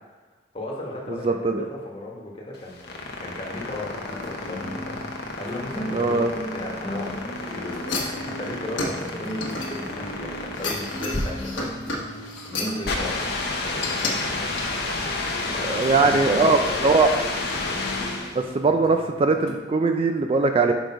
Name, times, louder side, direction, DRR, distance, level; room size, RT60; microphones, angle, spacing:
voice 1, 0.5-6.2 6.5-11.7 12.1-13.2 13.5-14.5 15.5-16.8 17.5-17.6, left 1 dB, 30° left, -2 dB, 1.2 m, -36 dB
voice 2, 1.2-1.7 5.9-6.3 15.7-17.1 18.4-20.7, right 3 dB, 30° right, 6 dB, 0.3 m, -20 dB
sound 1, 2.5-18.5, left 2 dB, 55° left, 0.9 m, -30 dB
sound 2, 4.0-13.3 14.1-19.6, equal, 5° left, 0.9 m, -38 dB
sound 3, 7.9-10.1 10.5-12.8 13.8-14.1 14.6-14.7, left 3 dB, 80° left, 1.2 m, -31 dB
5.9 x 5.1 x 4.6 m, 1.3 s
head